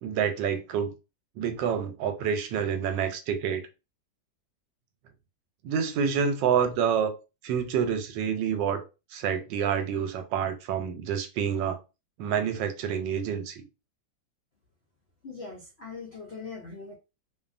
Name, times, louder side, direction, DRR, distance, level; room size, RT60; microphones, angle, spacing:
voice 1, 0.0-0.9 1.4-3.6 5.6-7.1 7.4-8.8 9.1-11.8 12.2-13.6, right 7 dB, 85° right, 1.3 m, -28 dB
voice 2, 15.2-17.0, left 4 dB, 75° left, 0.5 m, -41 dB
2.6 x 2.6 x 2.4 m
omnidirectional pair, 1.9 m